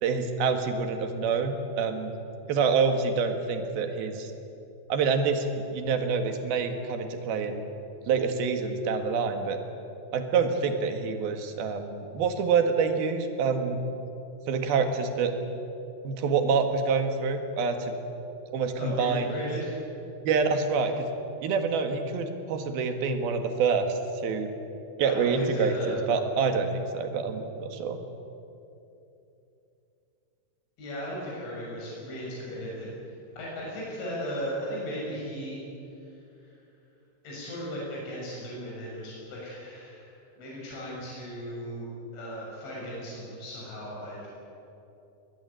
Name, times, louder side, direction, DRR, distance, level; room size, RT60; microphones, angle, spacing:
voice 1, 0.0-2.1 2.5-4.3 4.9-7.6 8.1-9.6 10.1-13.8 14.5-15.4 16.0-17.9 18.5-19.3 20.2-21.1 21.4-24.5 25.0-28.0, right 5 dB, 60° right, 6 dB, 3.3 m, -27 dB
voice 2, 18.8-19.8 25.1-26.1 30.8-35.6 36.1-36.6 37.2-41.9 42.1-44.3, equal, 75° left, -5 dB, 8.9 m, -36 dB
21.0 x 20.5 x 9.9 m, 2.8 s
omnidirectional pair, 5.4 m